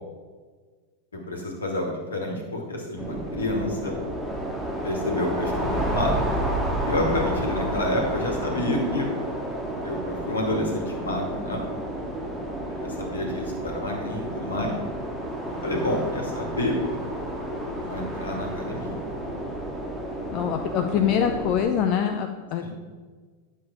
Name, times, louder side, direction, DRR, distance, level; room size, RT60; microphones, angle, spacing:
voice 1, 1.1-4.0 4.8-6.1 6.8-9.1 9.8-11.6 12.7-14.8 15.6-16.8 17.6-19.0 22.6-22.7, left 1 dB, 70° left, 1 dB, 2.4 m, -29 dB
sound 1, 3.0-21.7, right 1 dB, 5° right, 2.2 m, -31 dB
voice 2, 20.3-22.7, left 8 dB, 40° left, 6 dB, 0.7 m, -24 dB
10.5 x 7.4 x 4.9 m, 1.5 s
figure-of-eight pair, 90°, 0 cm